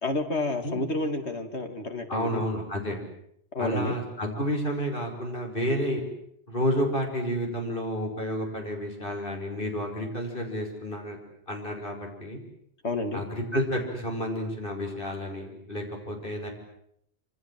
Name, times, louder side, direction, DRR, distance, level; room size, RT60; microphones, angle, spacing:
voice 1, 0.0-2.4 3.5-3.9 12.8-13.2, left 2 dB, 75° left, 6 dB, 3.0 m, -30 dB
voice 2, 2.1-3.0 3.6-6.0 6.5-11.2 11.5-12.4 13.1-16.5, equal, 50° left, 2 dB, 6.2 m, -30 dB
27.5 x 27.0 x 7.8 m, 0.72 s
omnidirectional pair, 1.1 m